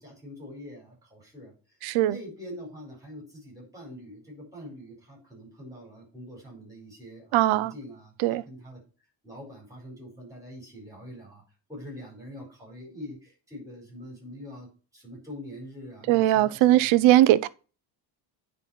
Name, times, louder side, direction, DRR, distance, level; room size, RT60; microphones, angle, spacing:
voice 1, 0.0-1.5 2.0-8.8 9.2-11.4 11.7-16.9, equal, 5° right, 4.5 m, -44 dB
voice 2, 1.8-2.2 7.3-7.7 8.2-8.4 16.1-17.5, right 14 dB, 85° right, 0.7 m, -20 dB
9.8 x 4.2 x 4.3 m
cardioid pair, 180°, 46 cm